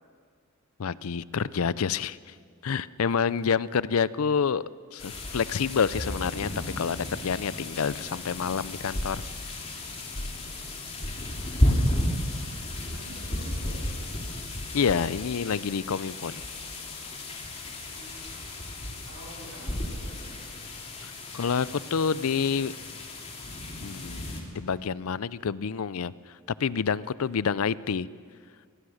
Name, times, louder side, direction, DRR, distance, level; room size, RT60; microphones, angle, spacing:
voice 1, 0.8-2.3 2.6-4.6 4.9-6.5 6.8-9.2 14.7-16.4 21.0-22.7 23.8-24.3 24.5-26.1 26.6-28.1, left 6 dB, 70° left, 19 dB, 0.5 m, -28 dB
sound 1, 5.0-24.4, left 1 dB, 30° left, 2.9 m, -33 dB
voice 2, 12.8-14.1 17.8-18.4 19.0-20.5, right 1 dB, 85° right, -3 dB, 6.9 m, -47 dB
25.0 x 19.5 x 6.4 m, 2.1 s
head